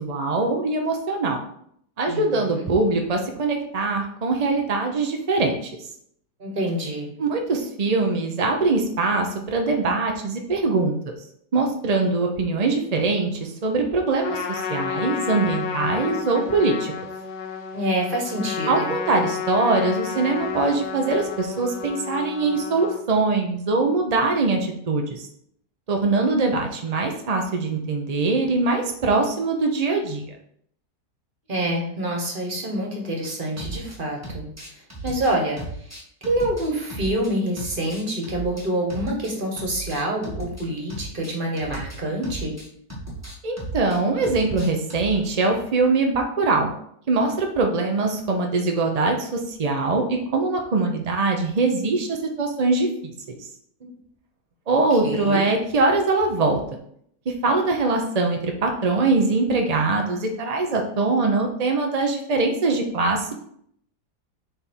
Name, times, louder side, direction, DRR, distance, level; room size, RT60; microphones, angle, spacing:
voice 1, 0.0-1.4 2.0-5.7 7.2-11.1 11.5-16.9 18.7-25.3 25.9-30.2 43.4-46.7 47.1-53.4 54.7-56.6 57.3-63.3, right 3 dB, 55° right, 2 dB, 0.4 m, -22 dB
voice 2, 2.1-2.7 6.4-7.1 17.7-18.9 31.5-34.5 35.0-35.6 36.2-42.6 53.8-53.9 55.0-55.4, right 1 dB, 30° right, 0 dB, 1.5 m, -26 dB
Trumpet, 14.2-23.0, left 7 dB, 90° left, 1.4 m, -31 dB
sound 1, 33.2-34.0 34.2-37.3 37.6-40.6 40.9-45.2, right 2 dB, 10° right, 1.3 m, -36 dB
7.4 x 3.5 x 4.5 m, 0.67 s
omnidirectional pair, 1.8 m